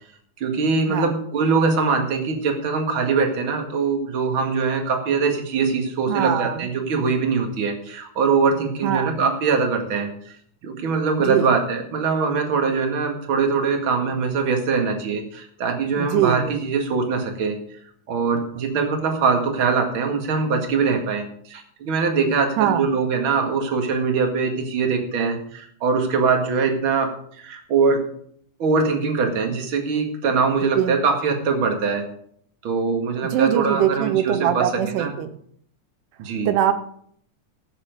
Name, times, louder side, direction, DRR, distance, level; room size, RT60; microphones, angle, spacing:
voice 1, 0.4-10.3 10.6-17.6 18.1-28.0 28.6-32.1 32.6-35.1 36.2-36.5, right 4 dB, 45° right, 4 dB, 2.4 m, -22 dB
voice 2, 6.1-6.7 8.8-9.1 11.2-11.5 16.0-16.6 22.6-22.9 30.7-30.9 33.2-35.4 36.5-36.7, right 10 dB, 85° right, 10 dB, 2.4 m, -22 dB
17.0 x 7.4 x 5.2 m, 0.63 s
omnidirectional pair, 3.6 m